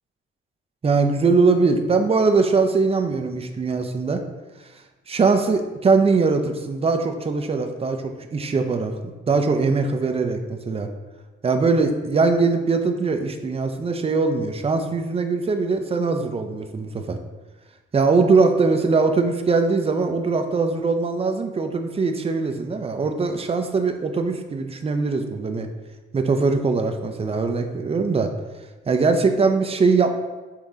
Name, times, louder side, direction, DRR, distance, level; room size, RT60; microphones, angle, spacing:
voice 1, 0.8-4.2 5.1-10.9 11.4-17.2 17.9-25.7 26.1-28.3 28.9-30.1, right 4 dB, 30° right, 5 dB, 0.6 m, -21 dB
7.4 x 3.8 x 3.6 m, 1.2 s
cardioid pair, 140°, 21 cm